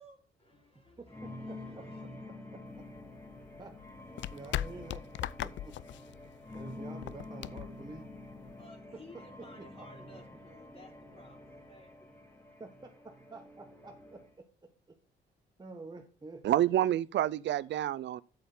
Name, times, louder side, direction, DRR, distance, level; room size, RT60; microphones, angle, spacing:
voice 1, 0.0-2.1 8.6-12.1, left 1 dB, 30° left, 4.2 m, -57 dB
voice 2, 1.0-1.9 2.3-2.6 3.6-3.8 4.3-5.7 6.5-8.1 8.9-9.9 12.6-14.7 15.6-16.4, right 3 dB, 20° right, 1.2 m, -49 dB
sound 1, 1.1-14.3, left 2 dB, 10° left, 3.1 m, -48 dB
sound 2, 2.7-8.7, left 12 dB, 65° left, 0.5 m, -40 dB
voice 3, 16.4-18.2, right 12 dB, 65° right, 0.5 m, -28 dB
8.2 x 7.8 x 3.8 m
cardioid pair, 90°, 20 cm